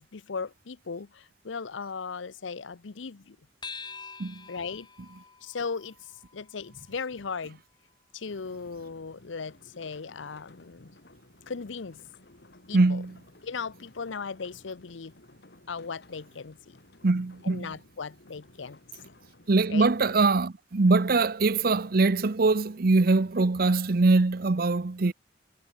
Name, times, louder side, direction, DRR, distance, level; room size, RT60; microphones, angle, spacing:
voice 1, 0.0-3.4 4.5-4.9 5.4-7.6 8.1-10.9 11.5-12.0 12.7-13.0 13.4-15.1 15.7-16.8 17.4-18.8 19.1-19.2 19.7-19.9, left 5 dB, 85° left, 0.7 m, -37 dB
sound 1, 3.6-8.4, left 5 dB, 25° left, 4.0 m, -47 dB
sound 2, 8.3-20.4, left 1 dB, 60° left, 3.1 m, -56 dB
voice 2, 12.7-13.2 17.0-17.7 19.5-25.1, right 3 dB, 50° right, 0.7 m, -23 dB
head